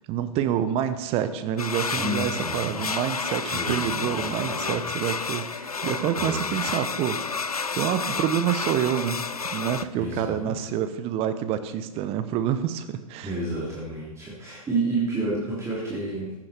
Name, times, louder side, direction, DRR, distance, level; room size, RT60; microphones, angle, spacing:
voice 1, 0.0-7.2 7.7-9.2 9.5-13.3, right 10 dB, 30° right, 11 dB, 0.9 m, -27 dB
sound 1, 1.6-9.8, left 5 dB, 85° left, 0.7 m, -30 dB
voice 2, 1.9-2.8 3.5-4.9 6.2-6.5 10.0-10.5 13.2-16.3, right 2 dB, 15° right, -6 dB, 3.5 m, -30 dB
15.0 x 12.0 x 4.5 m, 1.0 s
figure-of-eight pair, 110°, 19 cm